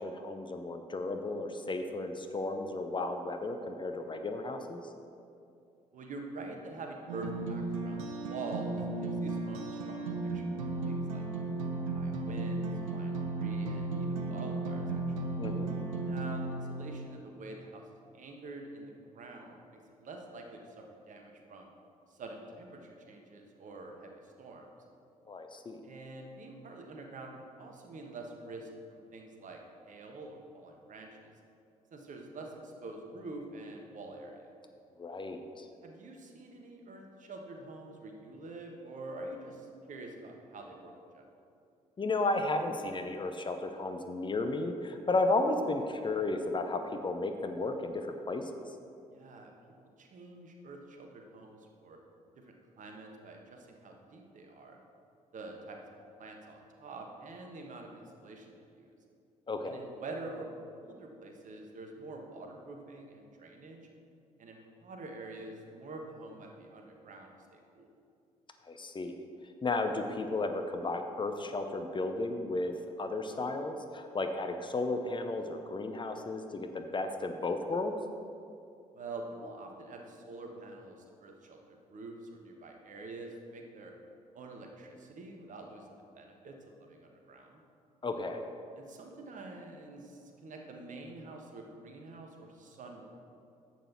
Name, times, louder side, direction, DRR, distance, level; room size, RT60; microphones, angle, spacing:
voice 1, 0.0-4.8 15.4-15.7 25.3-25.8 35.0-35.7 42.0-48.7 59.5-59.8 68.6-69.1 69.6-72.7 73.0-77.9 88.0-88.5, left 2 dB, 25° left, 6 dB, 0.8 m, -33 dB
voice 2, 5.9-10.5 10.8-11.2 11.9-15.0 16.0-17.8 18.1-20.6 21.1-21.7 22.1-24.7 25.8-27.3 27.6-31.3 31.9-34.5 35.8-41.2 49.1-49.5 50.0-52.0 52.3-54.8 55.3-55.8 56.2-58.9 59.6-60.5 60.8-63.8 64.4-67.9 78.9-83.9 84.3-87.6 88.8-93.2, right 2 dB, 45° right, 2 dB, 1.4 m, -46 dB
sound 1, 7.1-17.1, right 3 dB, 75° right, 0.7 m, -35 dB
11.0 x 7.9 x 4.3 m, 2.5 s
figure-of-eight pair, 45°, 17 cm